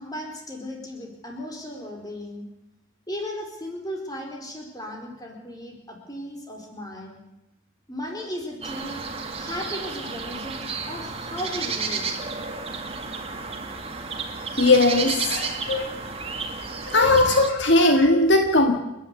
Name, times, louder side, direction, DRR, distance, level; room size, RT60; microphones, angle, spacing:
voice 1, 0.0-2.4 3.1-7.2 7.9-9.1 9.4-12.2, left 1 dB, 20° left, 1 dB, 4.4 m, -36 dB
sound 1, 8.6-17.5, right 4 dB, 30° right, 2.0 m, -32 dB
voice 2, 14.6-15.8 16.9-18.8, left 2 dB, 65° left, 4 dB, 1.9 m, -19 dB
29.5 x 11.0 x 8.4 m, 0.92 s
head